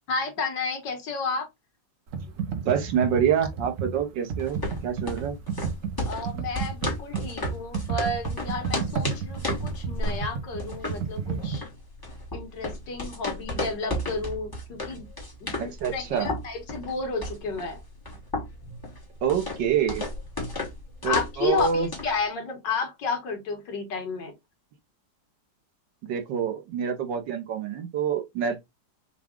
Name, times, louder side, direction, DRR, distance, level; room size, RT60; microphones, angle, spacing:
voice 1, 0.1-1.5 6.1-11.7 12.3-15.1 15.4-17.8 21.0-24.3, left 4 dB, 70° left, 2.0 m, -31 dB
Computer keyboard, 2.1-11.6, right 5 dB, 50° right, 1.1 m, -32 dB
voice 2, 2.5-5.4 15.6-16.3 19.2-20.0 21.0-21.9 26.0-28.6, right 8 dB, 75° right, 1.6 m, -26 dB
sound 1, 4.4-22.2, left 1 dB, 15° left, 1.1 m, -34 dB
6.0 x 2.4 x 3.7 m
omnidirectional pair, 2.0 m